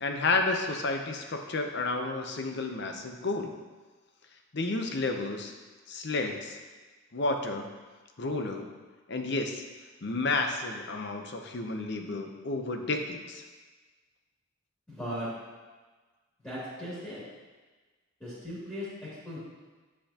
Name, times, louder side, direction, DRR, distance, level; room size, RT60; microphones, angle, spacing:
voice 1, 0.0-3.5 4.5-5.5 5.9-6.6 7.1-7.7 8.2-8.7 9.1-9.6 10.0-13.4, left 3 dB, 50° left, 4 dB, 0.7 m, -31 dB
voice 2, 14.9-15.3 16.4-17.2 18.2-18.9 19.2-19.4, equal, 10° left, -11 dB, 2.5 m, -37 dB
8.6 x 7.8 x 2.9 m, 1.3 s
head